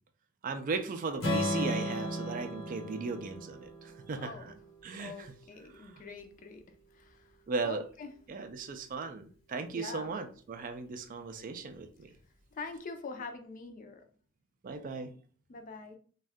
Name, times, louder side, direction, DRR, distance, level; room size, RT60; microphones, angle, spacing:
voice 1, 0.4-4.5 4.8-5.3 5.7-6.0 7.5-7.8 8.3-12.1 14.6-15.1, right 4 dB, 40° right, 8 dB, 0.3 m, -37 dB
Strum, 1.2-5.4, equal, 80° left, 1.1 m, -35 dB
voice 2, 4.2-4.5 5.0-6.6 6.9-7.3 7.6-8.1 9.7-10.1 12.5-14.0 15.5-16.0, left 4 dB, 40° left, 6 dB, 0.4 m, -44 dB
2.6 x 2.3 x 3.4 m, 0.44 s
head